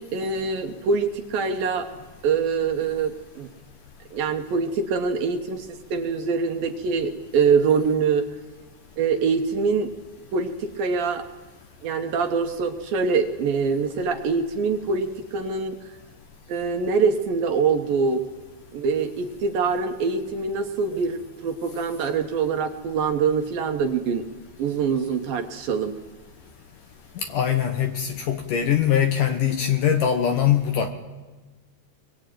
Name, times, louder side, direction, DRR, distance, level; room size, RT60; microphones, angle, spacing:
voice 1, 0.0-1.9 2.2-3.5 4.1-8.3 9.0-9.9 10.3-11.3 11.8-15.8 16.5-18.2 18.7-24.2 24.6-25.9, right 5 dB, 65° right, 6 dB, 2.6 m, -24 dB
voice 2, 27.2-30.9, left 9 dB, 65° left, 6 dB, 2.3 m, -22 dB
23.5 x 22.5 x 9.2 m, 1.2 s
omnidirectional pair, 5.0 m